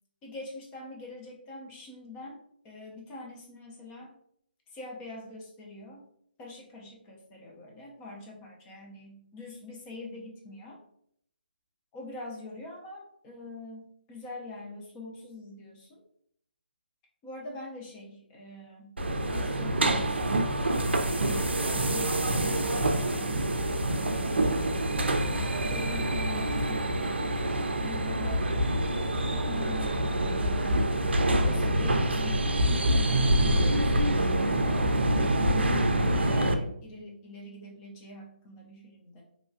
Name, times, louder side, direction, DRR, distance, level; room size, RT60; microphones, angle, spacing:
voice 1, 0.2-4.1 4.7-6.0 6.4-10.8 11.9-16.0 17.2-19.0 19.3-25.0 25.6-28.5 29.3-31.0 31.4-33.0 33.5-39.2, left 2 dB, 15° left, -1 dB, 0.5 m, -44 dB
sound 1, 19.0-36.5, right 1 dB, 90° right, 0.4 m, -26 dB
2.9 x 2.3 x 2.6 m, 0.70 s
figure-of-eight pair, 155°, 6 cm